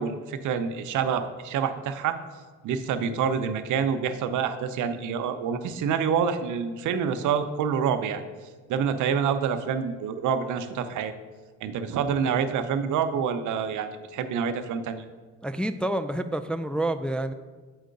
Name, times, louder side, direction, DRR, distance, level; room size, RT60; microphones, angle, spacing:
voice 1, 0.0-2.1 2.6-8.2 8.7-11.1 11.6-15.0, right 7 dB, 80° right, 9 dB, 0.7 m, -27 dB
voice 2, 15.4-17.3, right 1 dB, 5° left, 7 dB, 0.3 m, -28 dB
7.9 x 4.6 x 5.2 m, 1.4 s
cardioid pair, 90°, 30 cm